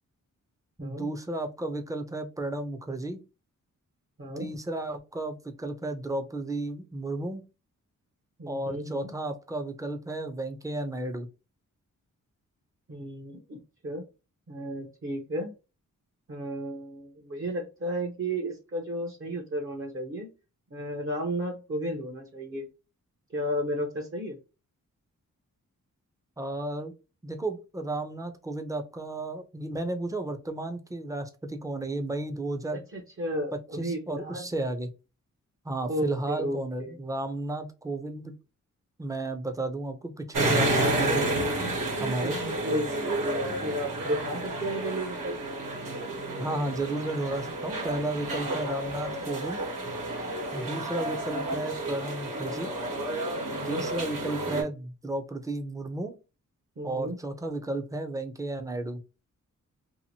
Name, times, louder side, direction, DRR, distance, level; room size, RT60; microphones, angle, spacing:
voice 1, 0.8-3.2 4.4-7.4 8.5-11.3 26.4-26.9 27.2-32.8 33.7-34.9 35.6-38.4 39.0-41.3 42.0-42.4 46.4-49.6 50.5-52.7 53.6-56.1 56.8-59.0, right 2 dB, 10° right, 6 dB, 0.5 m, -33 dB
voice 2, 4.2-4.5 8.4-9.1 12.9-14.1 14.5-15.5 16.3-20.3 20.7-22.6 23.3-24.4 32.9-34.5 35.8-37.0 42.1-42.3 42.6-45.4 50.6-50.8 53.5-53.8 56.8-57.2, right 1 dB, 40° right, 2 dB, 0.7 m, -33 dB
sound 1, 40.3-54.6, right 1 dB, 80° right, 1.2 m, -31 dB
2.8 x 2.5 x 2.8 m, 0.30 s
wide cardioid pair, 90°, 33 cm